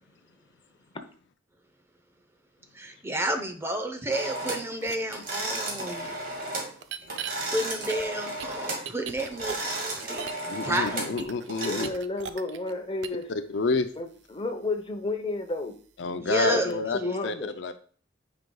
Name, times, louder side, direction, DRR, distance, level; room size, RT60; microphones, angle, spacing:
voice 1, 2.7-6.1 7.5-10.9 11.2-11.3 16.1-16.7, right 1 dB, 15° right, 6 dB, 0.7 m, -31 dB
sound 1, 4.1-4.7 5.1-6.7 7.0-8.9 9.2-11.8, right 2 dB, 50° right, 2.1 m, -34 dB
sound 2, 4.8-5.0 5.5-5.6 6.8-7.3 7.9-10.5 10.7-12.7 13.0-13.2, right 7 dB, 65° right, 0.5 m, -38 dB
voice 2, 10.5-11.9 13.3-13.9 16.0-17.8, left 4 dB, 70° left, 9 dB, 0.5 m, -29 dB
voice 3, 11.6-13.3 14.0-15.7 16.4-17.5, left 2 dB, 30° left, 6 dB, 0.8 m, -32 dB
9.2 x 5.1 x 2.3 m, 0.44 s
head